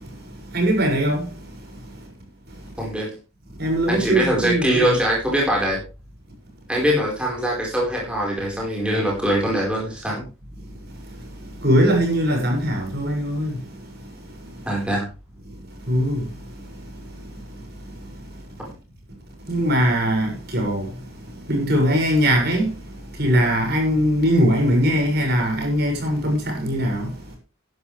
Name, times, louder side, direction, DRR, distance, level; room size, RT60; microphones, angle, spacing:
voice 1, 0.5-1.3 3.6-5.0 11.6-13.5 15.9-16.2 19.5-20.9 21.5-22.7 23.2-27.1, equal, 50° right, 6.4 m, -20 dB
voice 2, 2.8-3.1 3.9-5.8 6.7-10.2 14.6-15.0, equal, 5° right, 4.6 m, -22 dB
14.5 x 11.5 x 3.4 m
head